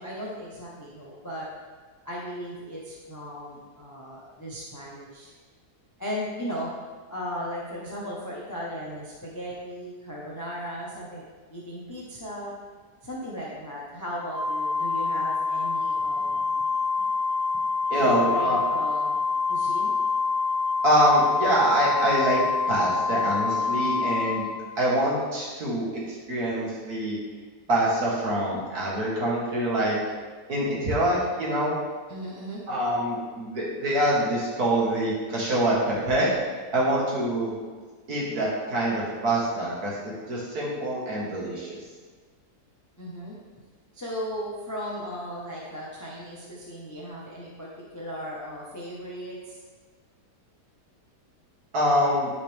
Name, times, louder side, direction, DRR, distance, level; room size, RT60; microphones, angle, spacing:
voice 1, 0.0-1.5 2.0-5.3 6.0-6.8 7.1-11.2 11.5-12.5 13.0-16.6 18.0-19.1 19.5-20.0 32.1-32.6 43.0-43.4 43.9-49.6, equal, 15° left, -5 dB, 0.9 m, -36 dB
Organ, 14.3-25.1, left 4 dB, 45° left, 0.5 m, -26 dB
voice 2, 17.9-18.6 20.8-22.4 22.7-24.5 24.8-27.2 27.7-30.0 30.5-31.8 32.7-36.3 36.7-37.6 38.1-41.8 51.7-52.3, right 1 dB, 60° right, -5 dB, 2.0 m, -25 dB
11.5 x 4.2 x 3.4 m, 1.4 s
omnidirectional pair, 1.8 m